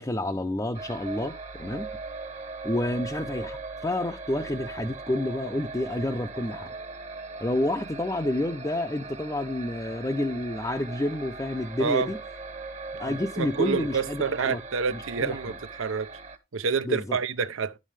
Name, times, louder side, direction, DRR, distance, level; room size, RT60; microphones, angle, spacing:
voice 1, 0.0-1.9 2.6-6.7 7.4-12.2 13.0-14.6 14.9-15.3 16.8-17.2, left 1 dB, 15° left, 0.5 m, -29 dB
sound 1, 0.7-16.4, right 3 dB, 30° right, 1.0 m, -40 dB
voice 2, 11.8-12.1 13.0-16.1 16.5-17.8, right 5 dB, 70° right, 0.6 m, -28 dB
11.0 x 7.4 x 3.3 m
head